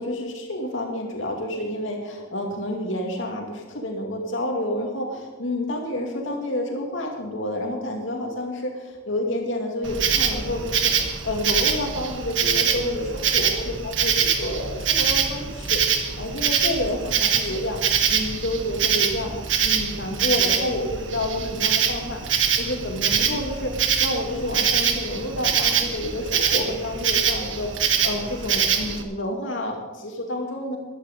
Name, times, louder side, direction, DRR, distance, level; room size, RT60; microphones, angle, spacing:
voice 1, 0.0-15.8 16.2-17.8 18.1-19.4 19.6-30.8, left 1 dB, 75° left, 1 dB, 2.4 m, -29 dB
Insect, 9.8-29.0, right 7 dB, 70° right, 1.4 m, -24 dB
14.0 x 11.5 x 5.3 m, 1.2 s
head